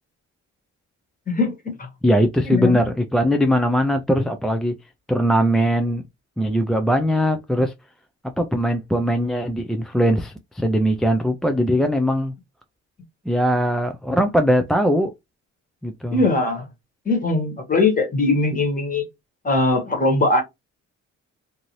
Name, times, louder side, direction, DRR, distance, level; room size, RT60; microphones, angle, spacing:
voice 1, 1.3-1.9 2.5-2.8 16.1-16.7 17.0-19.0 19.4-20.4, left 2 dB, 25° left, 1.3 m, -20 dB
voice 2, 2.0-4.7 5.1-6.0 6.4-7.7 8.4-12.3 13.3-15.1 15.8-16.2, equal, ahead, 0.3 m, -20 dB
2.7 x 2.6 x 3.0 m
cardioid pair, 90°, 30 cm